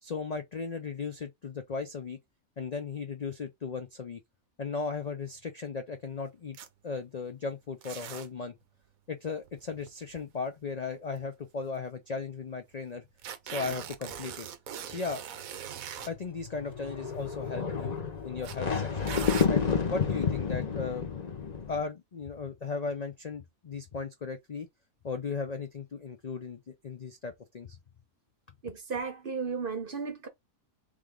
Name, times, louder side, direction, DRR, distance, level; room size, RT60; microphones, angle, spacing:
voice 1, 0.0-2.2 2.6-4.2 4.6-6.6 6.8-8.5 9.1-13.0 13.4-14.5 14.8-15.2 16.1-18.0 18.2-19.1 19.5-21.1 21.7-24.7 25.0-27.8, left 4 dB, 60° left, 0.4 m, -36 dB
sound 1, 6.5-6.7 7.8-8.3 9.4-10.4 11.2-11.3 11.6-11.7 13.2-16.1 17.1-17.3 18.4-18.6 19.1-19.5, right 9 dB, 75° right, 1.1 m, -40 dB
sound 2, 16.1-21.8, left 6 dB, 35° left, 0.9 m, -30 dB
voice 2, 28.6-30.3, right 5 dB, 45° right, 0.9 m, -34 dB
3.6 x 3.4 x 3.6 m
omnidirectional pair, 1.5 m